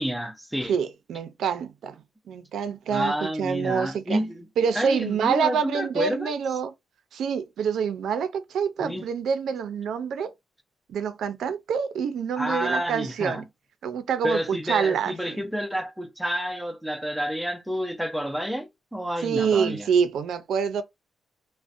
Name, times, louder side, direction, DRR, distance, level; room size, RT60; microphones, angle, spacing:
voice 1, 0.0-0.7 2.9-4.5 4.7-6.3 8.8-9.0 12.4-13.4 14.2-19.9, equal, ahead, 0.4 m, -29 dB
voice 2, 0.7-2.0 2.3-4.2 4.6-6.7 7.1-10.3 10.9-13.4 13.8-15.4 19.2-20.8, right 7 dB, 70° right, 0.4 m, -26 dB
2.5 x 2.1 x 2.4 m
wide cardioid pair, 175°, 0 cm